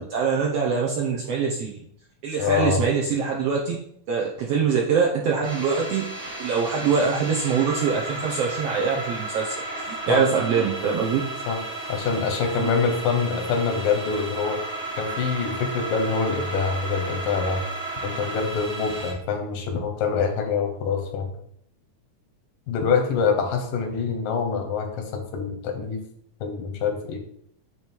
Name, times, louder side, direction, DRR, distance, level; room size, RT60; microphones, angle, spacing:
voice 1, 0.0-1.8 2.2-3.7 4.1-6.1 6.4-11.2 12.6-12.7, right 6 dB, 75° right, -2 dB, 1.5 m, -24 dB
voice 2, 2.4-2.8 10.1-10.2 11.5-11.6 11.9-14.6 15.0-17.6 18.0-21.3 22.7-24.9 25.1-26.0 26.4-27.2, left 5 dB, 90° left, 3 dB, 2.7 m, -25 dB
sound 1, 5.4-19.1, right 2 dB, 55° right, 2.6 m, -33 dB
8.9 x 3.2 x 4.5 m, 0.69 s
omnidirectional pair, 3.7 m